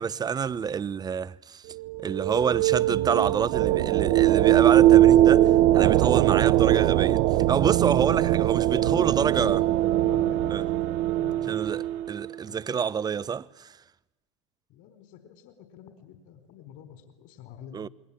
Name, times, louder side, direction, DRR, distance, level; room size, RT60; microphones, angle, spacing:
voice 1, 0.0-1.7 2.0-9.6 10.5-10.6 11.5-13.8 17.7-17.9, right 6 dB, 25° right, 0.9 m, -28 dB
sound 1, 1.7-12.3, right 14 dB, 55° right, 1.0 m, -21 dB
voice 2, 8.7-9.5 9.9-10.7 11.1-11.9 12.5-12.8 14.7-17.8, left 9 dB, 55° left, 4.4 m, -45 dB
28.5 x 22.0 x 8.7 m
hypercardioid pair, 80°, 16 cm